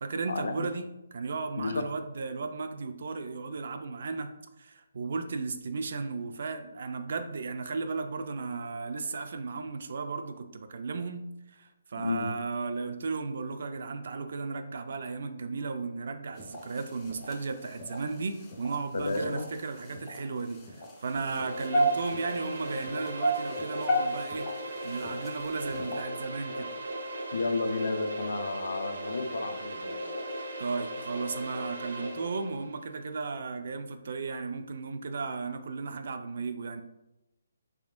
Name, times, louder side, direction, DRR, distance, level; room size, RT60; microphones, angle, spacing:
voice 1, 0.0-4.3 4.6-24.5 24.8-26.7 30.6-36.8, right 4 dB, 50° right, 8 dB, 0.3 m, -35 dB
sound 1, 16.4-26.0, right 1 dB, 15° left, 0.4 m, -34 dB
voice 2, 18.9-19.4 27.3-30.3, left 3 dB, 70° left, 6 dB, 0.5 m, -32 dB
sound 2, 21.0-32.6, equal, 80° right, 0.8 m, -38 dB
3.5 x 3.5 x 2.4 m, 0.94 s
hypercardioid pair, 175°, 0 cm